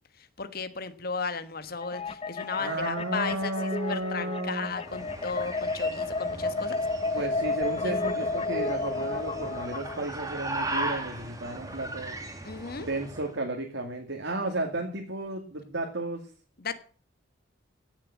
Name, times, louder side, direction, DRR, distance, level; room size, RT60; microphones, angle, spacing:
voice 1, 0.2-6.8 7.8-8.0 12.4-12.9 16.6-16.7, left 4 dB, 50° left, 11 dB, 1.3 m, -35 dB
sound 1, 1.8-10.0, left 3 dB, 30° left, 0.7 m, -32 dB
voice 2, 2.6-4.8 7.1-12.2 12.8-16.2, right 2 dB, 70° right, 2 dB, 2.2 m, -33 dB
sound 2, 4.7-13.4, right 2 dB, 20° right, 2.2 m, -38 dB
16.5 x 7.3 x 7.4 m, 0.42 s
head